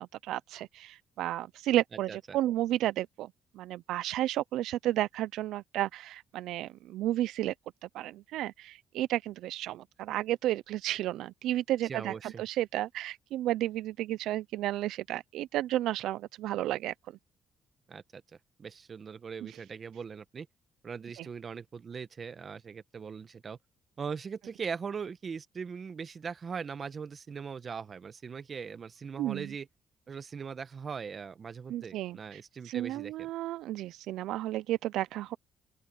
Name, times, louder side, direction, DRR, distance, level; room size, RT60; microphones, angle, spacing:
voice 1, 0.0-3.3 3.6-7.5 7.9-16.9 19.4-19.5 21.2-21.3 29.2-29.5 31.7-35.4, right 14 dB, 90° right, 0.3 m, -32 dB
voice 2, 11.8-12.4 17.9-18.2 18.6-20.5 20.8-23.6 24.0-29.7 30.1-33.3, right 6 dB, 45° right, 0.9 m, -40 dB
open air
cardioid pair, 90°, 0 cm